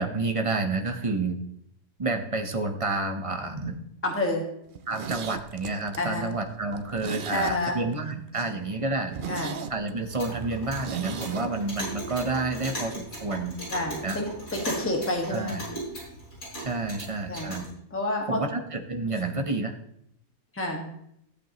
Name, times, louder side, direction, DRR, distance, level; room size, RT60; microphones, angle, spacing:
voice 1, 0.0-1.4 2.0-3.8 4.9-9.2 9.7-13.6 14.0-14.2 15.3-15.6 16.6-17.7 18.3-19.8, right 3 dB, 25° right, 5 dB, 0.8 m, -29 dB
voice 2, 4.0-4.5 6.0-6.3 7.3-7.8 8.5-8.6 9.3-9.6 13.7-15.6 17.3-17.6 17.9-18.4 20.5-20.9, left 1 dB, 10° left, 0 dB, 1.6 m, -29 dB
Zipper (clothing), 4.7-8.0 8.3-8.4 8.7-8.8 9.1-11.5 11.8-11.9, right 6 dB, 70° right, 0.4 m, -37 dB
Clock, 10.0-17.7, right 1 dB, 60° left, 5.5 m, -38 dB
14.5 x 8.4 x 3.0 m, 0.73 s
omnidirectional pair, 1.7 m